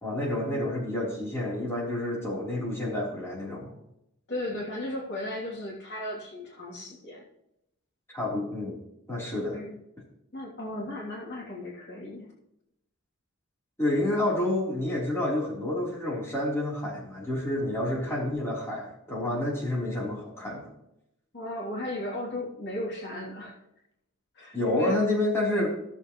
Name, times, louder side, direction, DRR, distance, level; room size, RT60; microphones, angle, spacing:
voice 1, 0.0-3.7 8.1-8.8 9.1-9.6 13.8-20.7 24.5-25.8, left 1 dB, 10° left, -5 dB, 3.8 m, -29 dB
voice 2, 4.3-7.2 9.5-9.8 10.3-12.3 21.3-23.5 24.3-25.0, left 1 dB, 55° left, -4 dB, 3.1 m, -36 dB
16.5 x 7.2 x 3.2 m, 0.81 s
head